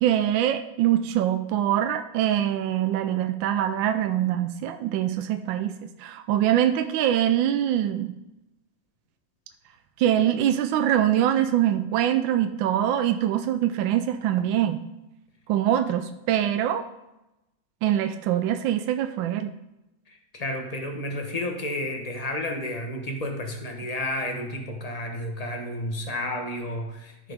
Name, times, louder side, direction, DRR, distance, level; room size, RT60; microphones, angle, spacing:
voice 1, 0.0-8.1 10.0-14.8 15.5-16.9 17.8-19.5, right 11 dB, 80° right, 7 dB, 1.3 m, -24 dB
voice 2, 20.1-27.3, left 1 dB, 30° left, 3 dB, 0.7 m, -31 dB
14.0 x 5.0 x 3.4 m, 0.94 s
omnidirectional pair, 2.1 m